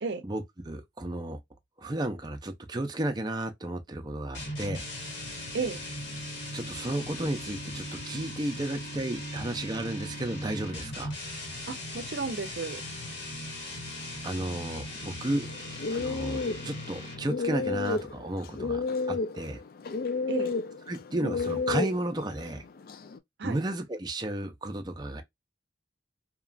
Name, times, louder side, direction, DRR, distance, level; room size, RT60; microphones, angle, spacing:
voice 1, 0.2-1.4 1.8-4.8 6.5-11.1 14.2-15.5 15.9-19.6 20.9-22.6 23.4-25.2, right 1 dB, 25° right, 0.5 m, -33 dB
sound 1, 4.3-17.4, left 1 dB, 90° left, 1.7 m, -39 dB
voice 2, 11.7-12.8 20.3-20.5 23.4-23.6, right 4 dB, 70° right, 0.5 m, -33 dB
sound 2, 15.4-23.2, left 4 dB, 50° left, 0.3 m, -32 dB
2.9 x 2.4 x 2.3 m
head